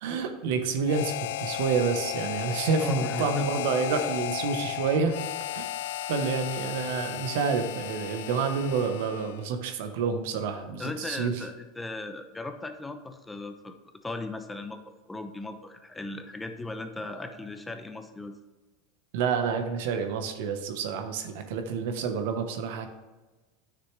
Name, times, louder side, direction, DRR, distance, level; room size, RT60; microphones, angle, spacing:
voice 1, 0.0-5.2 5.5-5.6 6.1-11.4 19.1-22.9, right 5 dB, 70° right, 7 dB, 1.0 m, -28 dB
Harmonica, 0.8-9.5, left 14 dB, 75° left, 0.3 m, -34 dB
voice 2, 2.8-3.5 10.8-13.8 14.0-18.4, left 2 dB, 10° left, 8 dB, 0.8 m, -37 dB
9.5 x 6.5 x 3.3 m, 1.2 s
supercardioid pair, 110°, 0 cm